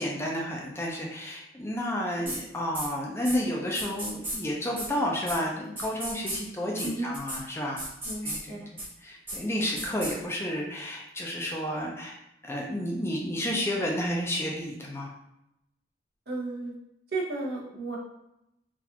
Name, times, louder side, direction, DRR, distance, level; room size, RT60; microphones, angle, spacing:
voice 1, 0.0-7.8 8.2-8.6 9.0-12.2 12.4-15.1, equal, 15° left, -2 dB, 0.5 m, -31 dB
sound 1, 2.3-2.4 2.7-2.9 3.2-3.4 3.7-4.4 4.8-4.9 5.3-5.4 5.8-6.4 6.8-6.9 7.1-7.4 7.8-8.4 8.8-8.9 9.3-9.4 9.8-10.1, right 1 dB, 10° right, 0.8 m, -34 dB
voice 2, 8.0-8.7 9.6-9.7 16.3-16.7 17.1-18.0, right 2 dB, 60° right, -3 dB, 0.9 m, -33 dB
4.0 x 2.4 x 2.8 m, 0.86 s
head